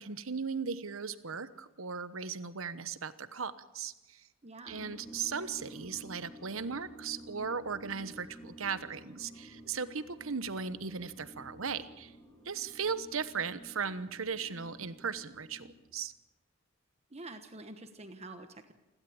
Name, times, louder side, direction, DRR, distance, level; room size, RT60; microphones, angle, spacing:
voice 1, 0.0-4.3 4.7-12.1 12.4-16.1, right 6 dB, 80° right, 13 dB, 1.1 m, -37 dB
voice 2, 4.4-4.9 17.1-18.7, right 2 dB, 30° right, 7 dB, 1.2 m, -47 dB
sound 1, 4.7-15.9, equal, 15° left, 3.6 m, -52 dB
28.5 x 12.5 x 8.7 m, 0.97 s
head